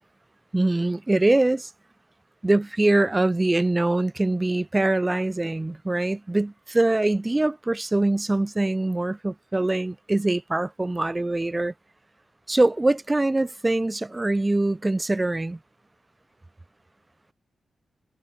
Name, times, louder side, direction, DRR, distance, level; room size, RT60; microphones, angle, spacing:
voice 1, 0.5-1.7 2.4-11.7 12.5-15.6, right 2 dB, 15° right, 0.9 m, -23 dB
wide cardioid pair, 165°, 0 cm